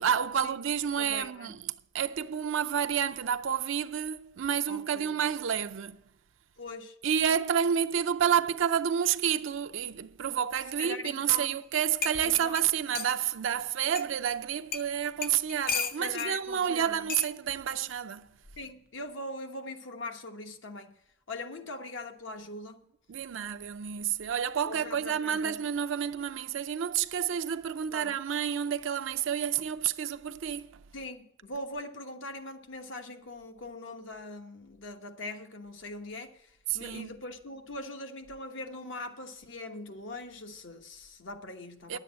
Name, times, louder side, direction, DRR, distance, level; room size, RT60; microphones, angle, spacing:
voice 1, 0.0-1.6 1.9-6.0 7.0-18.3 23.1-30.8 36.7-37.2 41.9-42.0, right 8 dB, 70° right, 0.4 m, -29 dB
voice 2, 1.0-1.5 4.7-5.2 6.6-7.0 10.8-11.6 12.2-12.6 16.0-17.1 18.6-21.0 21.3-22.8 24.7-25.6 27.9-28.1 30.9-42.0, left 2 dB, 70° left, 1.1 m, -41 dB
sound 1, 11.6-11.7 12.0-13.2 14.0-14.1 14.7-14.9 15.2-16.3 17.1-17.3 18.4-18.7, left 5 dB, 45° left, 0.6 m, -34 dB
10.5 x 8.1 x 7.3 m
head